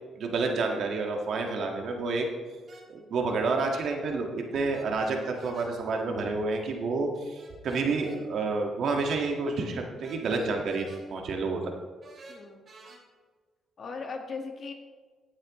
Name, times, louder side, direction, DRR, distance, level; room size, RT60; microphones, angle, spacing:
voice 1, 0.2-2.3 2.9-11.7, right 3 dB, 65° right, 2 dB, 1.8 m, -29 dB
sound 1, 2.7-2.9 4.7-5.7 7.3-8.2 10.0-11.0 12.0-13.0, right 2 dB, 40° right, 2.7 m, -50 dB
voice 2, 12.3-12.7 13.8-14.7, left 4 dB, 50° left, 4 dB, 1.6 m, -38 dB
16.0 x 8.8 x 3.1 m, 1.5 s
cardioid pair, 90°, 0 cm